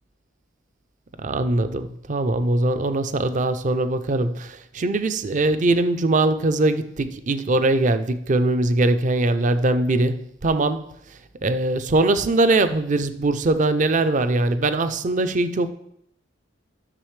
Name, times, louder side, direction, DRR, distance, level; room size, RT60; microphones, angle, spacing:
voice 1, 1.2-15.7, right 2 dB, 40° right, 0.5 m, -21 dB
11.0 x 6.4 x 3.2 m
head